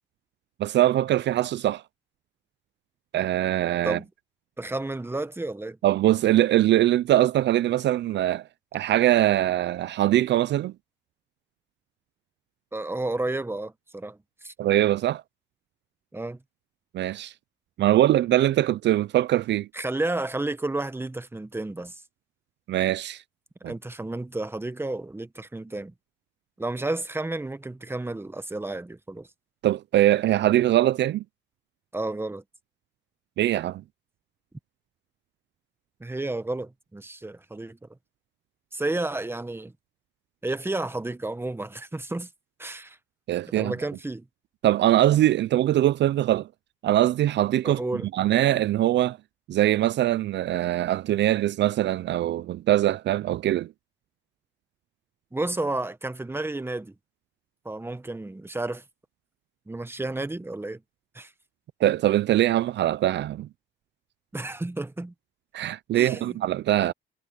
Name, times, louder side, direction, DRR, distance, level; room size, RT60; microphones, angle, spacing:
voice 1, 0.6-1.8 3.1-4.0 5.8-8.4 8.7-10.7 14.6-15.2 16.9-17.3 17.8-19.7 22.7-23.2 23.6-23.7 29.6-31.2 33.4-33.8 43.3-43.7 44.6-46.5 46.8-47.8 48.1-49.2 49.5-53.7 61.8-63.5 65.5-66.9, right 13 dB, 65° right, 0.4 m, -22 dB
voice 2, 4.6-5.8 12.7-14.2 14.4-14.5 16.1-16.4 19.7-22.0 23.6-25.9 26.6-29.3 31.9-32.4 36.0-37.9 38.7-39.7 40.4-42.3 42.6-43.0 43.5-44.3 47.6-48.1 55.3-56.9 57.6-58.8 59.7-60.8 61.1-61.3 64.3-65.1 65.9-66.4, right 2 dB, 10° right, 1.3 m, -31 dB
cardioid pair, 90°, 20 cm